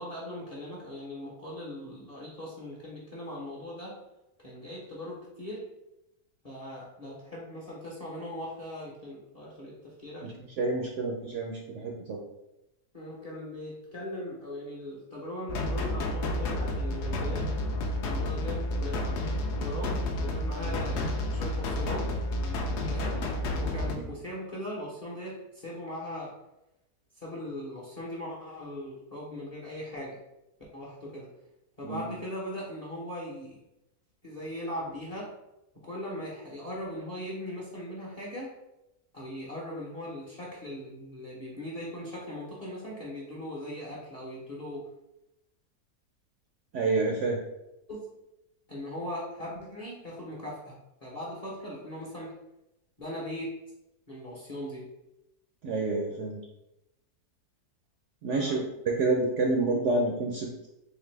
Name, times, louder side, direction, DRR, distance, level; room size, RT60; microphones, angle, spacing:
voice 1, 0.0-4.0 4.4-5.6 6.4-10.3 12.9-17.5 18.1-19.2 19.6-22.1 22.9-23.3 23.6-26.3 27.1-30.2 30.7-31.3 31.8-33.6 34.2-35.3 35.8-38.5 39.1-44.9 47.9-48.0 48.7-52.3 53.0-53.5 54.1-54.9 58.3-58.6, left 1 dB, 35° left, -5 dB, 0.7 m, -39 dB
voice 2, 10.6-12.2 23.9-24.0 31.8-32.1 46.7-47.4 55.6-56.4 58.2-60.5, right 3 dB, 70° right, 0 dB, 0.7 m, -28 dB
sound 1, 15.5-24.0, left 1 dB, 70° left, 0.6 m, -30 dB
4.0 x 2.8 x 3.2 m, 0.90 s
omnidirectional pair, 1.7 m